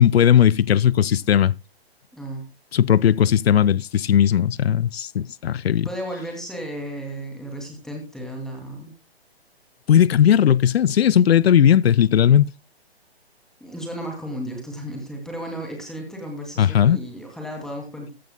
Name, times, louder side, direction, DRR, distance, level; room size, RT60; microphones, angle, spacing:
voice 1, 0.0-1.5 2.7-5.9 9.9-12.5 16.6-17.0, left 9 dB, 70° left, 0.6 m, -17 dB
voice 2, 2.1-2.5 5.8-8.9 13.6-18.1, equal, ahead, 2.6 m, -34 dB
15.5 x 12.0 x 2.2 m
hypercardioid pair, 150°, 32 cm